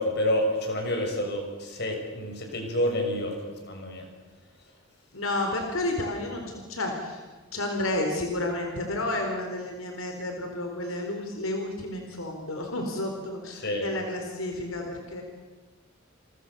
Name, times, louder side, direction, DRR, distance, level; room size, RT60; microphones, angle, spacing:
voice 1, 0.0-4.1 13.6-13.9, left 1 dB, 55° left, 3 dB, 6.5 m, -28 dB
voice 2, 5.1-7.2 7.5-15.2, left 1 dB, 85° left, 3 dB, 4.3 m, -31 dB
29.0 x 24.0 x 7.0 m, 1.3 s
head